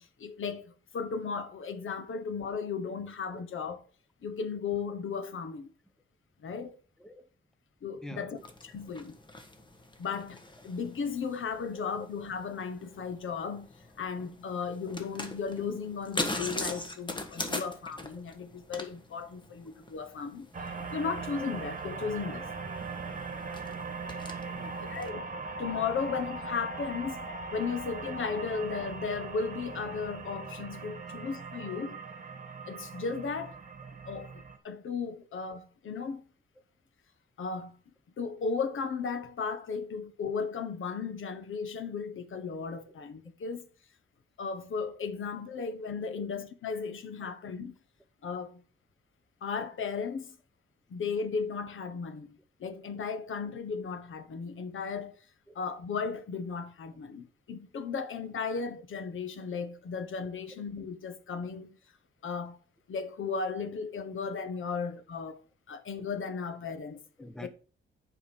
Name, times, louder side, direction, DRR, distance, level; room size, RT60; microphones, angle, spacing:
voice 1, 0.0-3.8 4.2-5.7 6.4-6.8 7.8-8.4 8.6-9.2 10.0-20.5 20.9-22.5 24.8-25.2 25.6-27.2 27.5-32.0 32.7-33.5 34.1-36.2 37.4-37.8 38.2-43.7 44.4-47.7 48.2-48.6 49.4-50.4 50.9-52.3 52.6-55.2 55.5-61.8 62.2-62.6 62.9-65.4 65.7-67.0 67.4-67.5, left 5 dB, 75° left, 1.3 m, -35 dB
voice 2, 7.0-7.3 8.0-8.4 14.6-14.7 24.5-25.0 31.0-31.3 46.1-46.3 47.2-47.3 55.5-55.6 67.2-67.5, left 1 dB, 5° left, 0.8 m, -47 dB
sound 1, 8.4-25.1, left 2 dB, 20° left, 1.4 m, -42 dB
sound 2, 20.5-34.6, right 4 dB, 40° right, 1.5 m, -40 dB
8.9 x 4.9 x 6.3 m
wide cardioid pair, 130°, 21 cm